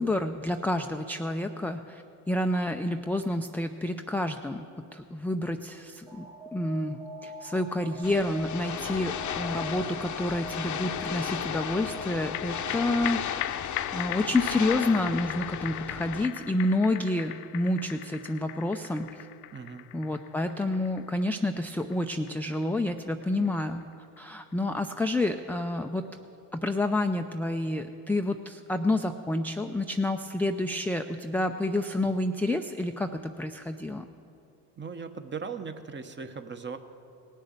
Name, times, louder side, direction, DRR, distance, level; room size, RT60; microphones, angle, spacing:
voice 1, 0.0-4.7 4.9-6.3 6.5-13.4 13.9-19.3 19.9-23.9 24.2-26.0 26.5-34.1, left 1 dB, 5° left, 5 dB, 0.4 m, -29 dB
Alarm, 6.1-13.1, right 1 dB, 75° right, 3.3 m, -44 dB
sound 1, 8.0-16.2, left 9 dB, 45° left, 0.8 m, -34 dB
sound 2, 12.1-24.8 25.1-25.2, left 17 dB, 85° left, 0.5 m, -39 dB
voice 2, 19.5-19.9 34.8-36.8, right 5 dB, 25° right, 8 dB, 1.0 m, -38 dB
18.5 x 6.6 x 8.0 m, 2.6 s
supercardioid pair, 75°, 42 cm